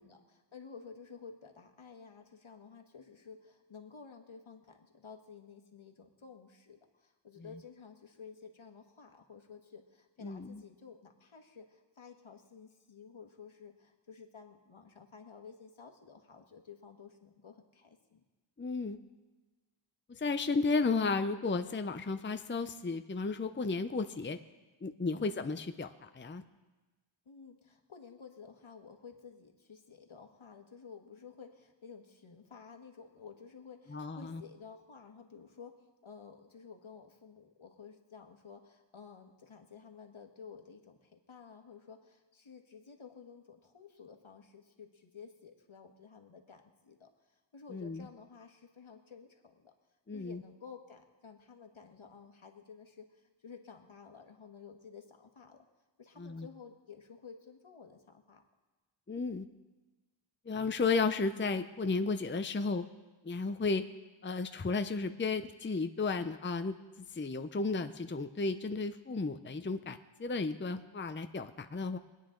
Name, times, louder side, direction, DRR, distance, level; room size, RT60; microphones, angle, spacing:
voice 1, 0.0-18.2 25.1-25.4 27.2-49.7 50.1-55.7 56.0-58.4, left 6 dB, 75° left, 4 dB, 1.5 m, -53 dB
voice 2, 10.2-10.6 18.6-19.0 20.1-24.4 24.8-26.4 33.9-34.4 47.7-48.1 50.1-50.4 56.2-56.5 59.1-59.5 60.5-62.8 63.2-63.8 64.2-66.7 67.1-72.0, left 4 dB, 25° left, 9 dB, 0.6 m, -33 dB
24.0 x 9.3 x 3.8 m, 1.2 s
wide cardioid pair, 45°, 49 cm